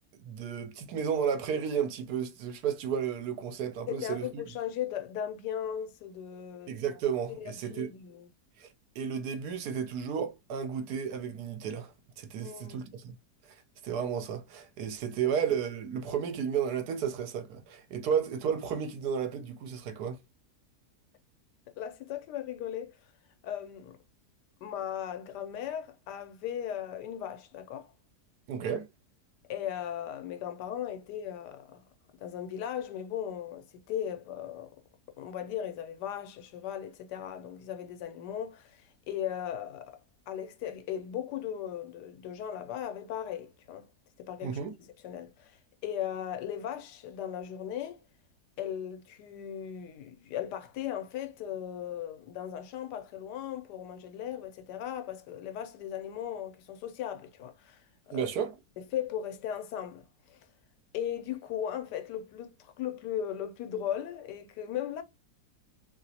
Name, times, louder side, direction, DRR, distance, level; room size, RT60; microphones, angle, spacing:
voice 1, 0.2-4.3 6.7-7.9 8.6-8.7 9.0-13.1 13.8-20.2 28.5-28.9 44.4-44.7 58.1-58.6, right 7 dB, 75° right, 1.2 m, -32 dB
voice 2, 3.9-6.7 7.4-8.3 12.4-12.8 21.7-22.9 23.4-24.0 24.6-27.9 29.5-31.8 32.2-34.7 35.2-40.0 40.3-43.9 44.2-45.6 45.8-48.0 48.6-58.3 58.8-60.4 60.9-65.0, left 10 dB, 85° left, 1.2 m, -37 dB
3.0 x 2.9 x 2.7 m
omnidirectional pair, 1.8 m